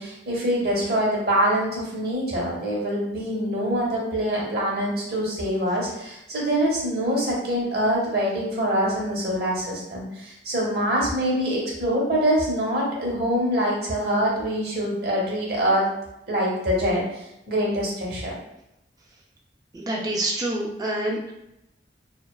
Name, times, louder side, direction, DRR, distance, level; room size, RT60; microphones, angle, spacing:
voice 1, 0.0-15.8 16.3-17.0 17.5-18.3, equal, 60° right, -3 dB, 0.8 m, -24 dB
voice 2, 19.7-21.3, right 1 dB, 20° right, -2 dB, 0.3 m, -27 dB
2.5 x 2.2 x 2.2 m, 0.87 s
head